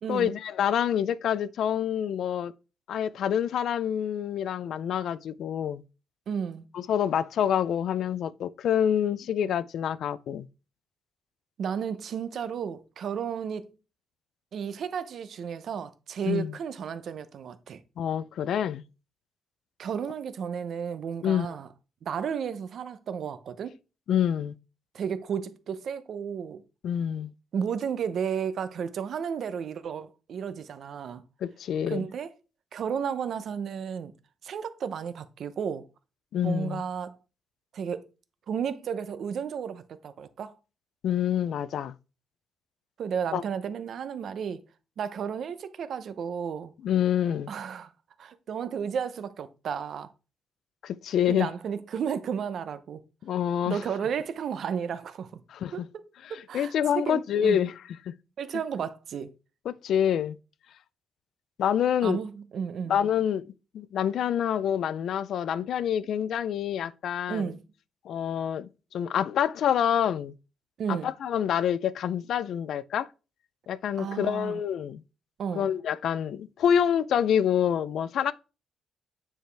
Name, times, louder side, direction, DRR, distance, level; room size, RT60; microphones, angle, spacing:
voice 1, 0.1-2.5 2.9-5.8 6.7-10.5 16.2-16.5 18.0-18.8 21.2-21.5 24.1-24.5 26.8-27.3 31.4-32.1 36.3-36.8 41.0-41.9 43.3-43.4 46.8-47.5 50.8-51.5 53.2-53.8 55.5-55.9 56.2-57.7 58.1-58.2 59.7-60.4 61.6-62.2 62.9-63.4 63.7-67.5 68.1-70.3 70.9-73.1 73.7-75.0 75.5-78.3, left 9 dB, 60° left, 0.3 m, -27 dB
voice 2, 6.3-6.7 11.6-13.7 14.5-17.8 19.8-21.7 22.0-23.7 24.9-26.6 27.5-31.2 31.9-32.3 32.7-34.1 34.4-35.9 36.4-37.2 37.7-38.0 38.5-40.6 43.0-44.6 45.0-46.7 47.5-47.9 48.2-50.1 51.3-53.0 53.7-55.4 55.7-55.8 56.3-57.6 58.4-59.3 62.0-63.0 67.3-67.6 70.8-71.1 74.0-74.6 75.4-75.7, right 7 dB, 50° right, 0.6 m, -33 dB
9.0 x 4.8 x 3.3 m
cardioid pair, 170°, 0 cm